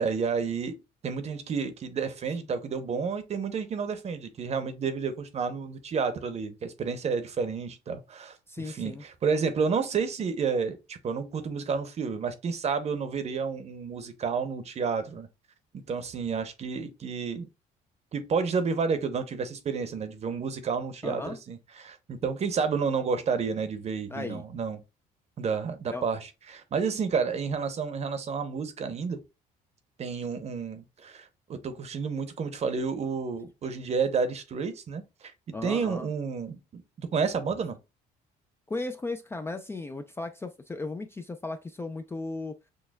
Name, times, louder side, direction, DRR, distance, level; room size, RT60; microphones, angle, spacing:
voice 1, 0.0-15.3 15.7-17.5 18.1-24.8 25.4-29.2 30.0-35.3 35.6-37.8, right 5 dB, 40° right, 0.7 m, -30 dB
voice 2, 8.5-9.0 21.0-21.4 24.1-24.4 25.9-26.1 35.5-36.1 38.7-42.5, left 3 dB, 15° left, 0.3 m, -36 dB
6.3 x 2.2 x 2.2 m
cardioid pair, 110°, 17 cm